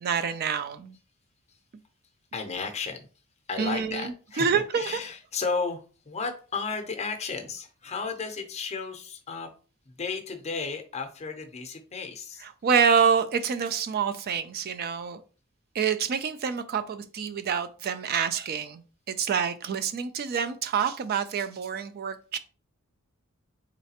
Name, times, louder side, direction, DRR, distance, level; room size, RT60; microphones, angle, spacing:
voice 1, 0.0-1.0 3.6-5.0 12.6-15.2 15.7-18.8 19.1-22.4, right 6 dB, 45° right, 0.3 m, -27 dB
voice 2, 2.3-3.0 3.5-9.5 9.8-12.5, left 4 dB, 30° left, 0.6 m, -33 dB
3.9 x 3.2 x 2.8 m
head